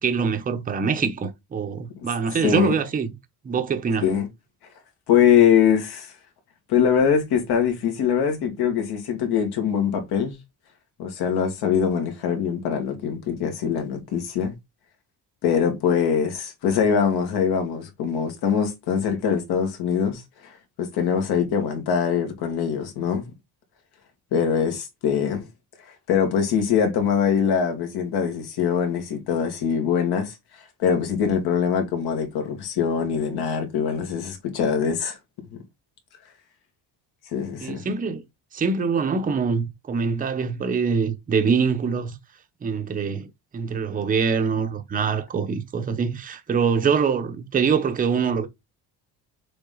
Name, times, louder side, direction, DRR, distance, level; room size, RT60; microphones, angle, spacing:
voice 1, 0.0-3.1 3.4-4.1 37.6-38.2 38.5-42.2 42.6-48.5, right 5 dB, 20° right, 0.7 m, -24 dB
voice 2, 2.4-2.8 4.0-4.3 5.1-6.1 6.7-10.4 11.0-14.5 15.4-23.2 24.3-25.4 26.1-30.4 30.8-35.2 37.3-37.8, left 7 dB, 70° left, 2.2 m, -23 dB
6.8 x 3.6 x 3.8 m
cardioid pair, 175°, 40 cm